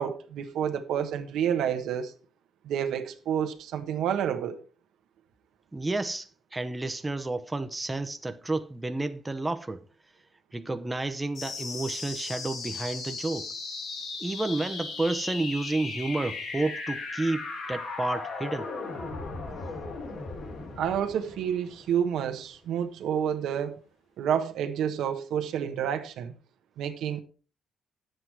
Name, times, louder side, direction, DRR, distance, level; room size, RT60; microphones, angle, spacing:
voice 1, 0.0-2.1 2.6-4.6 20.8-23.8 24.2-26.3 26.8-27.2, right 9 dB, 80° right, 1.2 m, -29 dB
voice 2, 5.7-9.8 10.5-13.5 14.2-18.7, right 2 dB, 15° right, 0.8 m, -31 dB
sound 1, 11.3-22.4, left 3 dB, 70° left, 3.9 m, -37 dB
9.8 x 8.0 x 4.5 m
cardioid pair, 90°, 0 cm